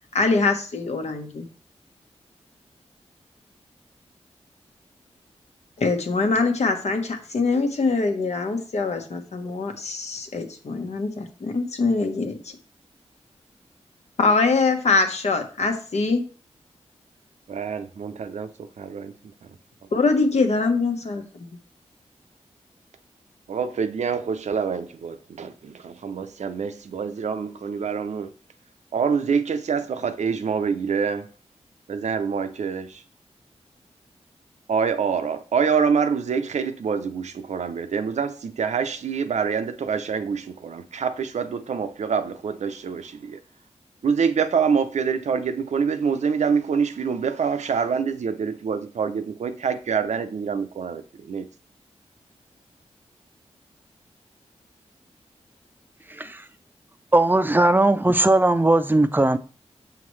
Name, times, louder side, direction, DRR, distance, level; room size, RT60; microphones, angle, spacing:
voice 1, 0.1-1.5 5.8-12.4 14.2-16.2 19.9-21.2, left 3 dB, 70° left, 1.2 m, -23 dB
voice 2, 17.5-18.5 18.8-19.1 23.5-28.3 28.9-31.3 31.9-33.0 34.7-43.4 44.0-51.5, right 6 dB, 85° right, 0.6 m, -26 dB
voice 3, 57.1-59.4, right 2 dB, 15° right, 0.5 m, -18 dB
6.8 x 5.7 x 3.2 m
wide cardioid pair, 75°, 12 cm